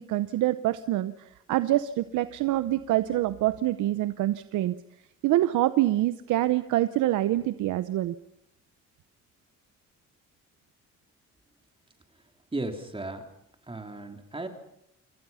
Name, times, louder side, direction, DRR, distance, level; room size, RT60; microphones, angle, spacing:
voice 1, 0.0-4.7 5.2-8.1, right 15 dB, 85° right, 12 dB, 0.9 m, -26 dB
voice 2, 12.5-13.2 13.7-14.5, right 2 dB, 20° right, 4 dB, 3.4 m, -35 dB
27.5 x 24.0 x 5.7 m, 0.76 s
cardioid pair, 90°, 30 cm